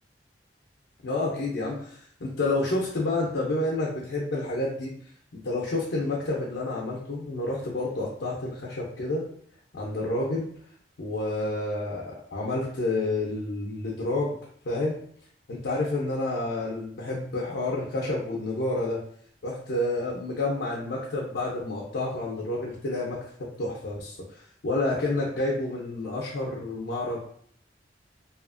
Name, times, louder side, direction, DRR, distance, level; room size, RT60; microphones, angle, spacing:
voice 1, 1.0-4.9 5.4-9.3 9.7-10.5 11.0-14.3 14.6-15.0 15.5-19.0 19.4-23.2 23.6-27.2, left 2 dB, 80° left, -3 dB, 0.5 m, -29 dB
2.8 x 2.4 x 2.4 m, 0.63 s
head